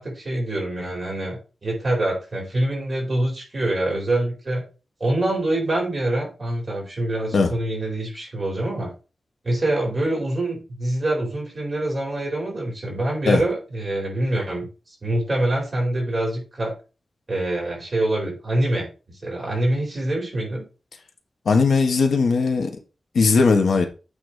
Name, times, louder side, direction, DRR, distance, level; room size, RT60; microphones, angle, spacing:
voice 1, 0.0-4.6 5.0-8.9 9.4-14.7 15.0-16.7 17.3-18.9 19.2-20.6, right 1 dB, 25° right, 4.9 m, -25 dB
voice 2, 21.4-22.7 23.1-23.9, left 4 dB, 85° left, 1.3 m, -18 dB
8.7 x 4.0 x 4.8 m
wide cardioid pair, 170°, 0 cm